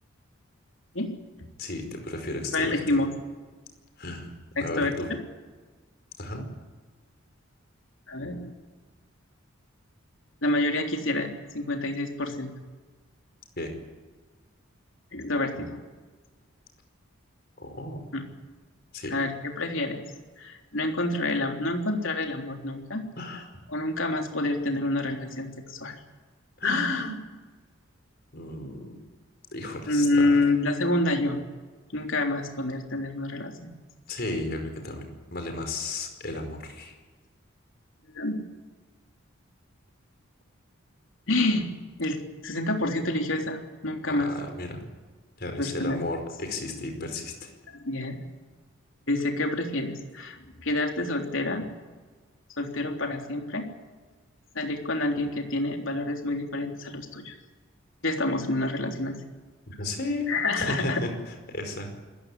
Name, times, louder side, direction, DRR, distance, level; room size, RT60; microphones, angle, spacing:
voice 1, 1.6-3.0 4.0-4.3 4.6-5.1 6.2-6.4 13.6-13.7 17.6-18.0 18.9-19.1 23.2-23.6 26.6-27.1 28.3-29.0 29.5-30.4 34.1-36.9 44.1-44.8 45.4-47.5 59.7-60.3 60.6-61.9, left 2 dB, 45° left, 5 dB, 5.0 m, -34 dB
voice 2, 2.5-3.1 4.6-4.9 8.1-8.5 10.4-12.5 15.1-15.8 18.1-18.2 19.1-20.0 20.4-23.0 23.7-25.9 26.6-27.1 29.9-31.4 31.9-33.8 38.1-38.5 41.3-41.7 42.0-42.2 42.4-44.3 45.6-46.0 47.7-48.2 49.1-51.7 52.6-53.6 54.5-57.3 58.0-59.2 60.3-61.0, left 2 dB, 65° left, 3 dB, 3.5 m, -28 dB
25.5 x 15.0 x 9.9 m, 1.4 s
head